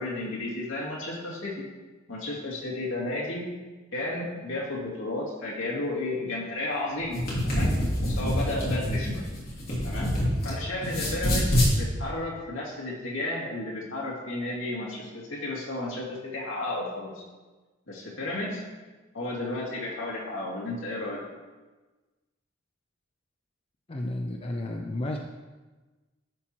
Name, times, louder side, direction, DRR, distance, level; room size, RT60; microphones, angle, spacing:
voice 1, 0.0-1.6 2.1-3.4 3.9-7.7 8.0-9.2 9.8-10.1 10.4-17.2 17.9-18.6 19.1-21.2, left 2 dB, 75° left, -3 dB, 2.1 m, -33 dB
sound 1, 7.0-10.5 10.8-11.7, equal, 45° left, 2.8 m, -26 dB
voice 2, 23.9-25.2, left 1 dB, 30° left, 2 dB, 0.5 m, -32 dB
11.0 x 4.3 x 4.5 m, 1.2 s
head